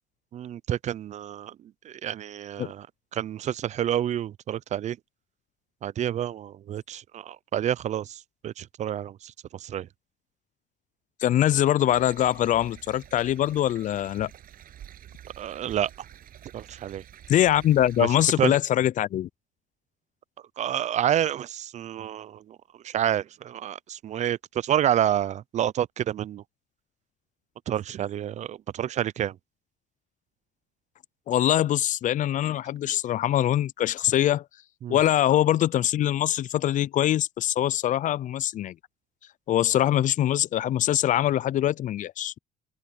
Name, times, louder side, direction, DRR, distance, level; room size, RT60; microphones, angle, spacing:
voice 1, 0.3-1.6 1.8-2.9 3.1-5.0 5.8-9.9 15.4-15.9 16.5-17.0 18.0-18.1 18.4-18.6 20.6-22.6 22.8-26.4 27.7-29.4 34.8-35.0, right 10 dB, 45° right, 0.4 m, -29 dB
voice 2, 11.2-14.3 17.3-19.3 31.3-34.4 34.9-38.7 39.5-42.3, left 12 dB, 50° left, 0.4 m, -23 dB
sound 1, 11.9-18.4, right 11 dB, 60° right, 7.7 m, -48 dB
cardioid pair, 110°, 17 cm